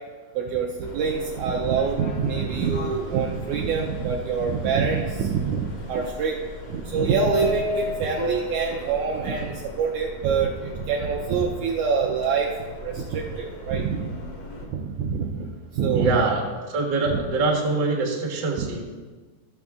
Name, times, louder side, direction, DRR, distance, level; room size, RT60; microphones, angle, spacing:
voice 1, 0.4-6.4 6.7-12.5 12.8-14.1 14.7-15.5 15.7-16.2 17.1-17.2, right 5 dB, 75° right, 0 dB, 1.8 m, -25 dB
Subway metro underground, 0.8-14.6, left 1 dB, 85° left, 0.9 m, -36 dB
voice 2, 15.9-18.8, right 3 dB, 50° right, -1 dB, 1.3 m, -24 dB
13.0 x 6.7 x 3.6 m, 1.4 s
omnidirectional pair, 3.9 m